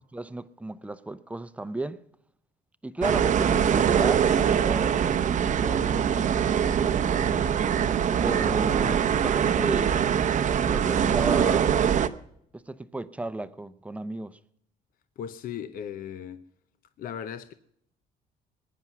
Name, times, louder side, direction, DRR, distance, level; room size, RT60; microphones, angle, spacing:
voice 1, 0.1-2.0 2.8-6.5 8.2-10.1 10.5-11.8 12.5-14.4, right 2 dB, 10° right, 0.7 m, -34 dB
sound 1, 3.0-12.1, right 8 dB, 50° right, 0.7 m, -23 dB
voice 2, 15.2-16.4 17.0-17.5, left 9 dB, 55° left, 0.7 m, -37 dB
21.0 x 9.6 x 6.1 m
cardioid pair, 110°, 17 cm